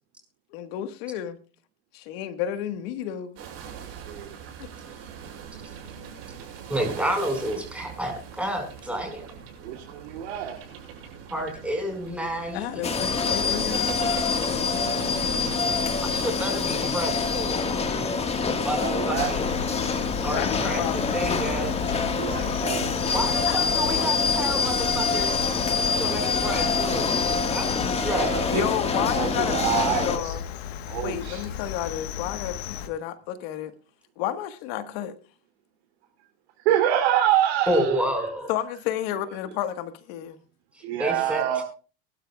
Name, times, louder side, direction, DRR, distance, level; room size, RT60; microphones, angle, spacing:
voice 1, 0.5-1.4 1.9-3.4 4.6-4.7 12.5-14.8 19.0-19.2 20.3-21.2 22.4-23.0 23.5-23.6 28.5-30.4 31.0-33.7 34.2-35.2 38.5-40.4, left 11 dB, 70° left, 1.6 m, -32 dB
sound 1, 3.4-17.9, right 7 dB, 50° right, 7.0 m, -42 dB
voice 2, 3.7-4.3 9.6-10.6 13.8-13.9 18.8-19.3 22.1-22.9 27.9-28.6 29.2-30.3 30.9-31.4 36.6-38.0 40.8-41.6, right 11 dB, 80° right, 3.0 m, -26 dB
voice 3, 6.7-9.2 11.3-12.8 16.1-17.6 18.6-19.5 20.2-20.8 21.1-21.7 23.1-25.3 26.0-27.2 27.5-28.3 37.7-38.5 41.0-41.6, right 1 dB, 5° right, 5.2 m, -29 dB
sound 2, 12.8-30.2, left 4 dB, 20° left, 1.7 m, -26 dB
Cricket, 19.1-32.9, left 9 dB, 85° left, 1.4 m, -35 dB
23.5 x 12.0 x 2.4 m
supercardioid pair, 125°, 31 cm